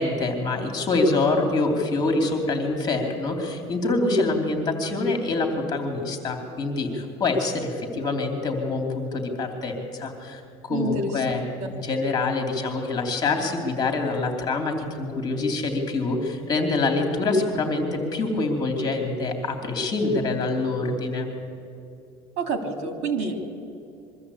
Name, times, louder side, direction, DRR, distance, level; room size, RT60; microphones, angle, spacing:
voice 1, 0.0-11.4 11.7-21.3, left 3 dB, 35° left, 4 dB, 3.0 m, -25 dB
voice 2, 10.7-11.2 22.4-23.5, right 4 dB, 65° right, 6 dB, 2.8 m, -28 dB
23.0 x 13.5 x 8.5 m, 2.7 s
cardioid pair, 145°, 12 cm